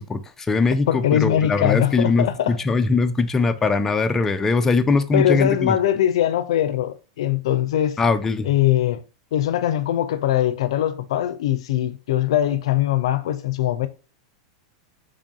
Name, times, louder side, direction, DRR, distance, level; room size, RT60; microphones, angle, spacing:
voice 1, 0.0-5.8 8.0-8.5, left 4 dB, 15° left, 0.4 m, -21 dB
voice 2, 0.9-2.6 5.1-8.0 8.4-9.0 9.3-13.9, left 12 dB, 75° left, 0.5 m, -21 dB
3.4 x 2.6 x 3.6 m
supercardioid pair, 135°, 3 cm